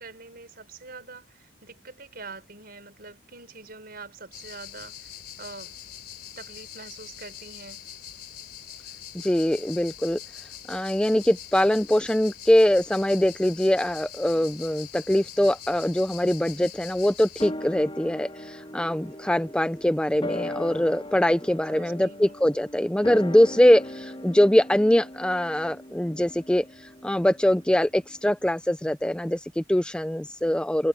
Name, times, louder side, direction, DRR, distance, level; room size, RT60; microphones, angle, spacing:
voice 1, 0.0-5.8 6.4-7.9 21.7-22.4, right 3 dB, 50° right, 5.9 m, -44 dB
sound 1, 4.3-17.5, left 10 dB, 55° left, 3.7 m, -43 dB
voice 2, 9.1-10.2 10.7-30.9, left 1 dB, 5° left, 0.4 m, -23 dB
sound 2, 17.4-28.0 28.3-28.4, left 1 dB, 30° left, 3.8 m, -39 dB
head